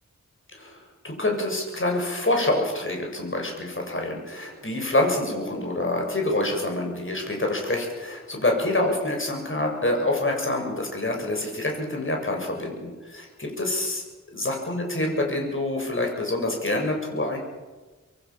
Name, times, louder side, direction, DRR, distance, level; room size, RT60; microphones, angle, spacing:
voice 1, 0.5-14.0 14.3-17.4, left 2 dB, 45° left, 2 dB, 7.4 m, -26 dB
26.0 x 22.5 x 7.4 m, 1.3 s
wide cardioid pair, 90°, 30 cm